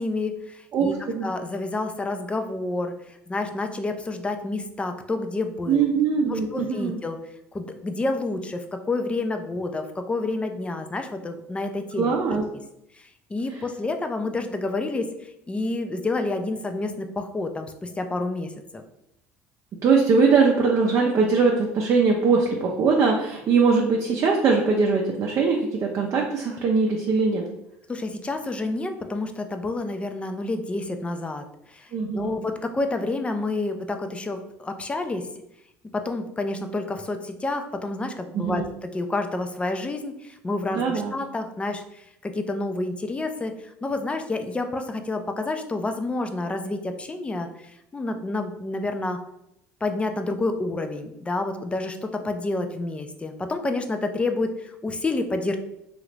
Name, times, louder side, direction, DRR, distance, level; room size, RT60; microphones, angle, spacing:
voice 1, 0.0-0.9 1.2-5.9 6.3-7.2 7.5-12.1 12.9-18.8 27.9-35.3 35.9-38.6 38.9-40.8 41.1-49.2 49.8-55.6, left 2 dB, 15° left, 6 dB, 0.4 m, -29 dB
voice 2, 0.7-1.3 5.7-7.0 12.0-12.4 19.8-27.4 31.9-32.4 38.3-38.7 40.7-41.2, right 4 dB, 45° right, 0 dB, 0.5 m, -21 dB
2.8 x 2.5 x 3.2 m, 0.81 s
hypercardioid pair, 70°, 7 cm